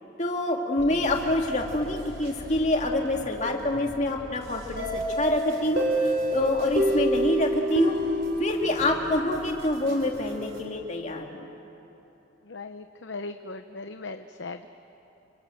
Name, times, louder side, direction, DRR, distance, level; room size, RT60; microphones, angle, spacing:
voice 1, 0.2-7.9 8.4-11.5, left 1 dB, 35° left, 2 dB, 2.5 m, -26 dB
sound 1, 0.8-10.6, equal, 85° right, 4.8 m, -45 dB
sound 2, 4.8-9.4, equal, 50° right, 3.2 m, -27 dB
voice 2, 12.4-14.7, left 3 dB, 70° left, 8 dB, 0.9 m, -38 dB
28.5 x 26.0 x 7.8 m, 3.0 s
head